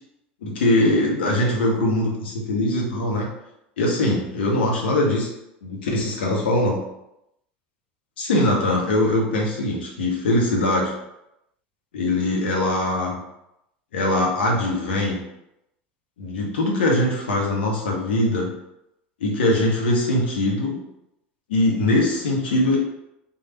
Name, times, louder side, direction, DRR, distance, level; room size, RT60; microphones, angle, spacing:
voice 1, 0.4-3.3 3.8-5.3 5.6-6.8 8.2-10.9 11.9-13.2 13.9-15.2 16.2-18.5 19.2-20.8 21.5-22.8, left 1 dB, 75° left, -1 dB, 0.8 m, -22 dB
3.2 x 2.3 x 2.9 m, 0.85 s
hypercardioid pair, 80°, 6 cm